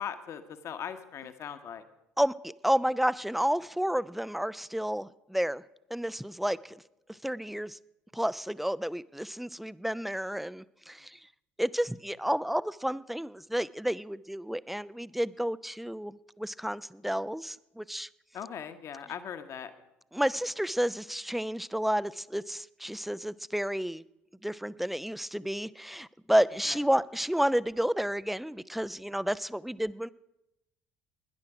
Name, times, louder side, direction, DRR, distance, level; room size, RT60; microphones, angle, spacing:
voice 1, 0.0-1.8 18.3-19.7 26.7-26.8, left 8 dB, 45° left, 9 dB, 1.1 m, -39 dB
voice 2, 2.2-5.6 5.9-6.8 7.2-7.8 8.1-11.2 11.6-18.1 20.1-24.0 24.4-30.1, equal, ahead, 18 dB, 0.4 m, -31 dB
18.5 x 10.5 x 4.9 m, 0.89 s
figure-of-eight pair, 60°, 7 cm